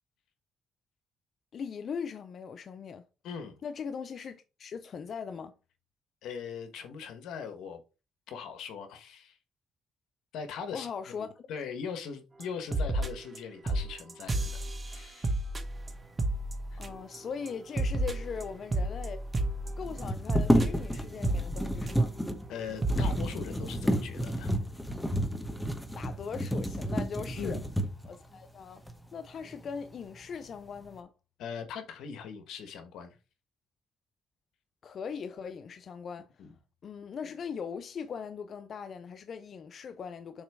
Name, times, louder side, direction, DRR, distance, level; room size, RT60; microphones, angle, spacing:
voice 1, 1.5-3.0 3.6-5.5 10.7-11.5 16.8-19.3 19.8-22.1 25.9-27.6 28.0-28.8 29.1-31.1 34.8-36.5 36.8-40.4, left 6 dB, 55° left, 0.5 m, -40 dB
voice 2, 3.2-3.6 6.2-7.8 8.3-9.4 10.3-10.9 11.2-15.4 16.7-16.8 22.5-24.5 27.4-27.7 31.4-33.1 36.4-36.5, left 6 dB, 85° left, 1.2 m, -40 dB
sound 1, 12.4-12.5 12.7-13.4 13.7-17.2 17.5-22.2 22.5-22.6 22.8-23.1, right 1 dB, 30° right, 1.1 m, -32 dB
sound 2, 18.4-18.5 18.6-18.7 19.8-28.2 28.9-29.0 29.4-30.1 30.4-31.0, equal, 5° left, 1.1 m, -31 dB
7.2 x 3.0 x 4.7 m
cardioid pair, 90°, 0 cm